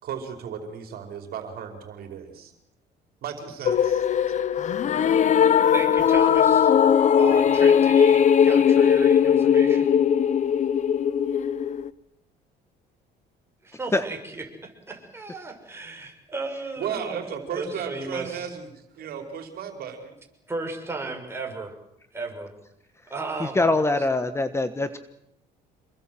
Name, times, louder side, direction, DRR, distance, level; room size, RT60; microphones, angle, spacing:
voice 1, 0.0-2.5 3.2-4.1 16.8-18.7 19.0-20.1, right 7 dB, 65° right, 5 dB, 4.9 m, -35 dB
sound 1, 3.7-11.9, left 8 dB, 45° left, 0.9 m, -19 dB
voice 2, 5.7-6.7 7.2-9.9 13.6-18.5 20.5-21.7 22.1-22.5 23.1-23.6, right 3 dB, 15° right, 2 dB, 6.5 m, -35 dB
voice 3, 23.6-25.0, left 2 dB, 15° left, 11 dB, 1.4 m, -23 dB
27.5 x 22.0 x 7.8 m, 0.78 s
cardioid pair, 110°, 17 cm